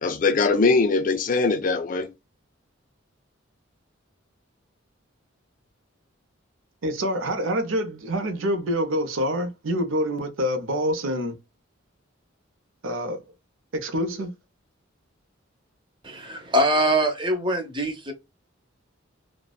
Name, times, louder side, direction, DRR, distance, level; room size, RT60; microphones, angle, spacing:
voice 1, 0.0-2.1, left 3 dB, 40° left, 0.4 m, -21 dB
voice 2, 6.8-11.4 12.8-13.2 13.7-14.3, equal, 75° right, 0.6 m, -26 dB
voice 3, 16.0-18.1, right 1 dB, 25° right, 0.6 m, -23 dB
2.6 x 2.1 x 2.2 m
head